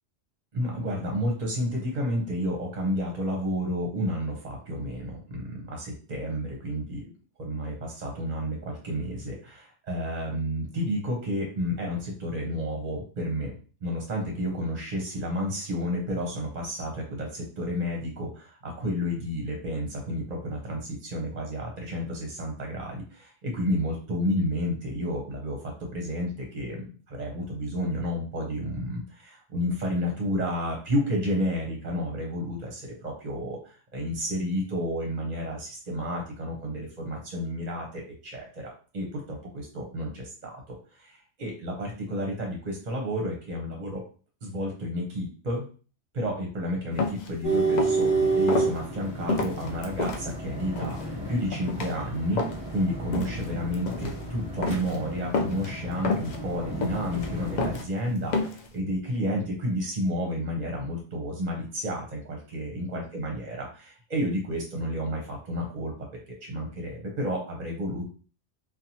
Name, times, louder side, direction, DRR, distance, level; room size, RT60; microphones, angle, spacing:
voice 1, 0.5-7.1 7.4-13.5 13.8-44.0 44.4-45.6 46.1-68.0, equal, 45° right, 0 dB, 0.7 m, -31 dB
sound 1, 47.0-47.3 47.7-48.1 48.5-48.7 49.3-50.2 50.8-51.1 51.5-51.9 52.4-52.7 53.1-53.5 53.7-54.1 54.6-55.0 55.3-55.7 56.0-56.4 56.8-57.3 57.6-57.8 58.3-58.7, left 3 dB, 60° left, 0.4 m, -29 dB
sound 2, 47.4-57.8, right 3 dB, 30° left, 1.1 m, -30 dB
2.9 x 2.1 x 2.7 m, 0.39 s
omnidirectional pair, 1.2 m